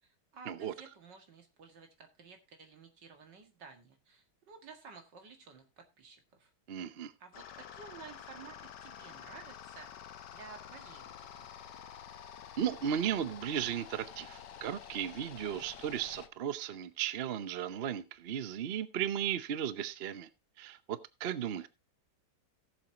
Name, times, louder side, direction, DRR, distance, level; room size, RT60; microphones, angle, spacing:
voice 1, 0.0-6.5 7.2-9.9 10.3-11.6, right 5 dB, 80° right, 5 dB, 2.5 m, -53 dB
voice 2, 6.7-7.1 12.6-20.3 20.6-21.7, right 9 dB, 55° right, 13 dB, 0.7 m, -35 dB
sound 1, 7.3-16.3, left 9 dB, 75° left, 1.5 m, -49 dB
17.5 x 7.4 x 2.8 m, 0.25 s
omnidirectional pair, 1.9 m